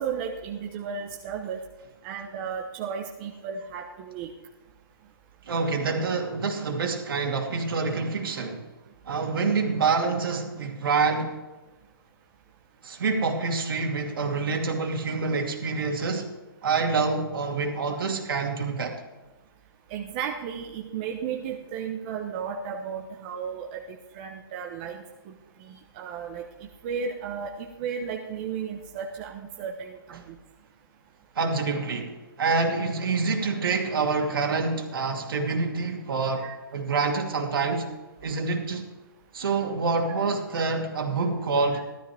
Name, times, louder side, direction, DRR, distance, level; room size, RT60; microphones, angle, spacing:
voice 1, 0.0-1.6 2.0-4.3 19.9-23.8 24.1-25.3 25.6-26.4 26.8-30.4 36.4-36.6, right 7 dB, 25° right, 1.0 m, -34 dB
voice 2, 5.5-8.6 9.1-11.4 12.8-16.3 16.6-19.0 30.1-30.2 31.4-36.5 36.7-37.9 38.2-38.9 39.3-41.8, right 4 dB, 65° right, 2.5 m, -27 dB
15.5 x 13.0 x 3.5 m
hypercardioid pair, 165°, 13 cm